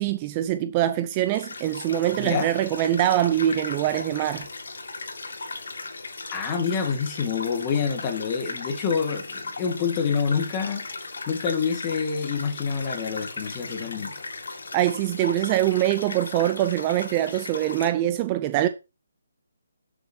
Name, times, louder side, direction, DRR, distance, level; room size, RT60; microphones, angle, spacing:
voice 1, 0.0-4.5 14.7-18.7, right 13 dB, 20° right, 0.4 m, -24 dB
sound 1, 1.1-17.9, left 3 dB, 75° left, 1.9 m, -37 dB
voice 2, 2.2-2.5 6.3-10.9 11.3-14.1, left 6 dB, 20° left, 1.6 m, -27 dB
11.5 x 6.2 x 2.8 m
hypercardioid pair, 165°, 0 cm